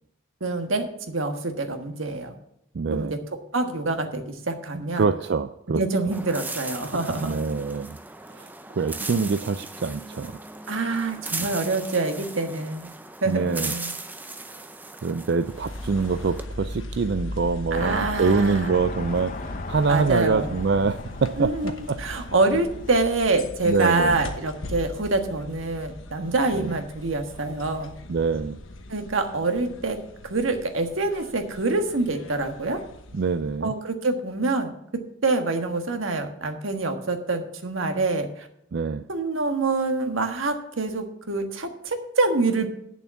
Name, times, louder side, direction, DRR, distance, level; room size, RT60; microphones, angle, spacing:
voice 1, 0.4-2.3 2.9-3.1 3.5-5.0 5.7-7.4 10.7-12.9 13.2-13.9 17.7-18.8 19.9-20.5 21.4-28.0 28.9-30.0 30.2-32.8 33.6-38.5 39.1-42.7, right 3 dB, 85° right, 6 dB, 1.5 m, -26 dB
voice 2, 2.7-3.1 5.0-5.8 7.2-8.0 8.3-10.4 13.3-13.7 14.5-14.7 15.0-22.3 23.7-24.2 26.5-26.8 28.1-28.6 33.1-33.7 38.7-39.0, right 4 dB, 55° right, 10 dB, 0.4 m, -25 dB
sound 1, 6.1-16.5, right 3 dB, 10° right, 0.6 m, -38 dB
sound 2, 15.4-33.8, left 1 dB, 80° left, 1.1 m, -39 dB
sound 3, 17.7-23.0, left 3 dB, 40° left, 0.7 m, -37 dB
8.7 x 7.0 x 7.0 m, 0.76 s
head